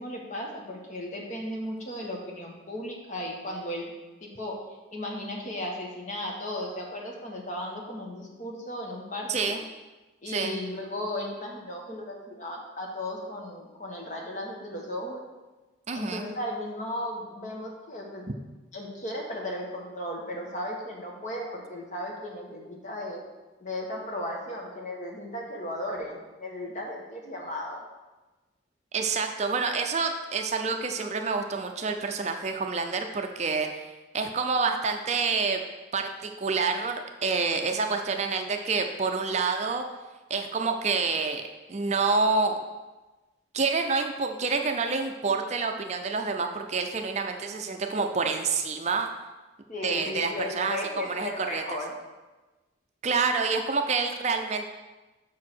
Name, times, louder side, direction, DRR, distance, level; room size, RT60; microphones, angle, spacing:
voice 1, 0.0-3.9 4.2-4.5 4.9-9.5 10.2-15.2 15.9-18.2 18.7-23.2 23.6-27.8 49.7-51.9, left 1 dB, 40° left, 0 dB, 1.3 m, -35 dB
voice 2, 9.3-9.6 10.3-10.6 15.9-16.3 28.9-35.6 35.9-39.8 40.3-41.4 41.7-42.6 43.5-49.1 49.8-50.8 51.0-51.6 53.0-54.7, right 4 dB, 35° right, 5 dB, 0.4 m, -28 dB
6.1 x 4.7 x 6.1 m, 1.2 s
head